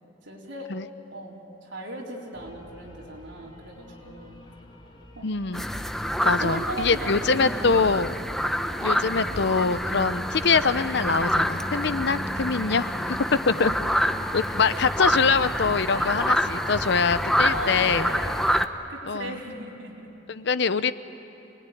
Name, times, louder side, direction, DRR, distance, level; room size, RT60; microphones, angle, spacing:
voice 1, 0.2-0.7 1.1-4.4 5.1-5.3 6.4-8.0 13.5-13.8 15.9-16.3 17.5-18.6 18.9-20.1, right 1 dB, 70° right, -2 dB, 4.1 m, -37 dB
sound 1, 2.3-17.3, left 1 dB, 25° left, 2.3 m, -49 dB
voice 2, 5.2-5.6 6.2-8.2 8.8-13.7 14.3-18.1 19.1-19.4 20.3-20.9, left 5 dB, 65° left, 14 dB, 0.7 m, -24 dB
sound 2, 5.5-18.7, equal, ahead, 0.7 m, -27 dB
27.0 x 20.0 x 10.0 m, 2.9 s
head